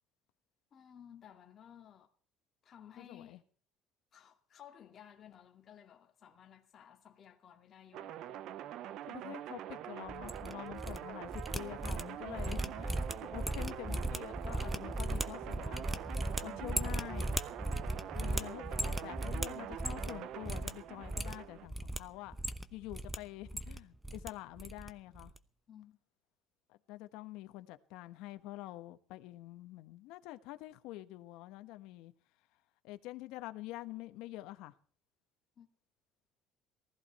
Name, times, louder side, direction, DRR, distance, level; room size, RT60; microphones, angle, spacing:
voice 1, 0.7-2.1 2.6-3.4 4.1-8.1 16.5-16.8 25.7-26.0 35.6-35.7, left 9 dB, 35° left, 2.3 m, -56 dB
voice 2, 3.0-3.4 9.1-15.8 16.4-17.4 18.1-22.4 22.7-25.3 26.7-32.1 32.8-34.7, left 17 dB, 80° left, 1.3 m, -47 dB
sound 1, 7.9-21.7, right 11 dB, 55° right, 0.8 m, -45 dB
sound 2, 10.1-11.0 11.2-20.2 20.4-20.7 21.0-22.0 22.3-23.2 23.4-24.3 24.6-24.9 25.1-25.4, right 1 dB, 5° right, 0.9 m, -37 dB
19.5 x 14.5 x 4.3 m
cardioid pair, 150°, 0 cm